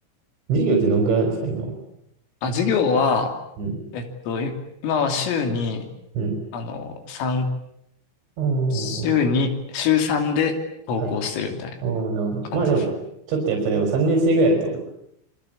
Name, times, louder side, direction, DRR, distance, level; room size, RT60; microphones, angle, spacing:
voice 1, 0.5-1.7 3.6-3.8 6.1-6.4 8.4-9.1 11.0-11.1 11.8-12.9 13.3-14.8, right 3 dB, 60° right, 3 dB, 6.2 m, -22 dB
voice 2, 2.4-3.4 3.9-4.5 4.8-5.9 6.5-7.5 8.7-10.6 10.9-11.8 12.5-12.7, left 5 dB, 75° left, 6 dB, 5.4 m, -23 dB
26.5 x 24.0 x 8.7 m, 0.76 s
omnidirectional pair, 6.0 m